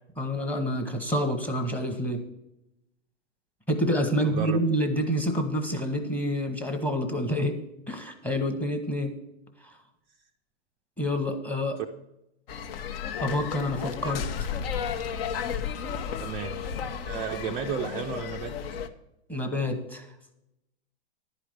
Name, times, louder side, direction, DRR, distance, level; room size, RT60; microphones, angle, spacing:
voice 1, 0.2-2.2 3.7-7.6 7.9-9.1 11.0-11.8 13.2-14.5 19.3-20.0, equal, 5° left, 6 dB, 1.0 m, -28 dB
voice 2, 4.2-4.6 16.2-16.6 17.0-18.5, right 7 dB, 15° right, 2 dB, 0.4 m, -33 dB
sound 1, 12.5-18.9, left 7 dB, 60° left, 1.0 m, -33 dB
11.0 x 5.0 x 7.8 m, 0.86 s
hypercardioid pair, 145°, 33 cm